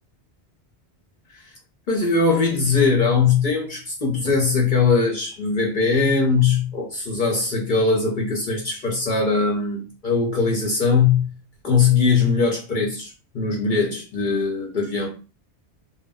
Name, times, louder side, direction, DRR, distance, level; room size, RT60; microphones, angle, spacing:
voice 1, 1.9-11.3 11.6-15.2, left 4 dB, 55° left, 0.7 m, -21 dB
2.1 x 2.0 x 3.4 m
omnidirectional pair, 1.1 m